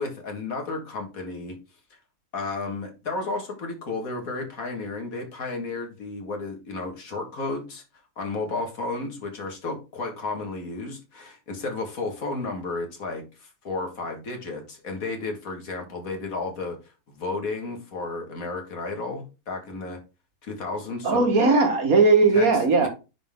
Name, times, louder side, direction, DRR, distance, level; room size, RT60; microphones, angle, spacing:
voice 1, 0.0-1.6 1.9-2.0 2.3-7.8 8.2-16.8 17.1-20.0 20.4-21.3 22.3-22.9, left 3 dB, 60° left, 4 dB, 2.0 m, -33 dB
voice 2, 21.0-22.9, right 3 dB, 65° right, 3 dB, 2.0 m, -18 dB
9.9 x 3.9 x 3.6 m, 0.29 s
omnidirectional pair, 1.6 m